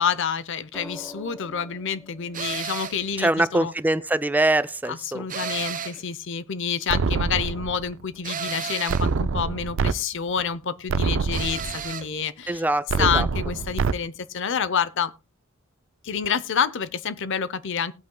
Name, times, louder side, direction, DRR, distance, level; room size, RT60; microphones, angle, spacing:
voice 1, 0.0-3.7 4.9-12.6 13.0-15.1 16.0-17.9, left 7 dB, 65° left, 0.7 m, -28 dB
sound 1, 0.7-4.9 6.6-6.9, left 2 dB, 10° left, 1.1 m, -46 dB
sound 2, 2.3-3.1 5.3-6.1 8.2-9.1 11.3-12.1, right 7 dB, 40° right, 0.9 m, -32 dB
voice 2, 3.2-5.2 12.5-13.3, right 1 dB, 10° right, 0.4 m, -23 dB
sound 3, 6.9-7.9 8.9-9.9 10.4-10.5 10.9-11.9 12.9-13.9, right 4 dB, 65° right, 0.4 m, -25 dB
19.0 x 8.4 x 2.2 m
head